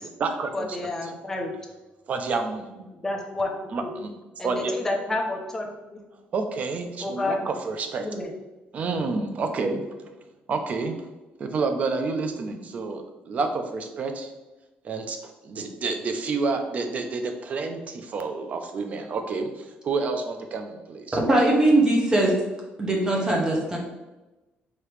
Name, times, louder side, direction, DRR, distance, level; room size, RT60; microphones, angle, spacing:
voice 1, 0.0-0.8 1.0-1.1 2.1-2.8 3.7-4.1 4.4-4.7 6.3-8.1 8.7-9.9 10.5-11.0 11.4-14.3 14.8-21.2, right 4 dB, 40° right, 6 dB, 0.5 m, -29 dB
voice 2, 0.5-1.5 3.0-3.5 3.8-3.9 4.4-6.0 7.0-7.4 8.0-8.3, left 2 dB, 10° left, 0 dB, 0.6 m, -29 dB
voice 3, 21.3-22.3 22.8-23.8, right 1 dB, 20° right, -2 dB, 0.9 m, -20 dB
4.8 x 2.9 x 3.2 m, 1.1 s
cardioid pair, 155°, 4 cm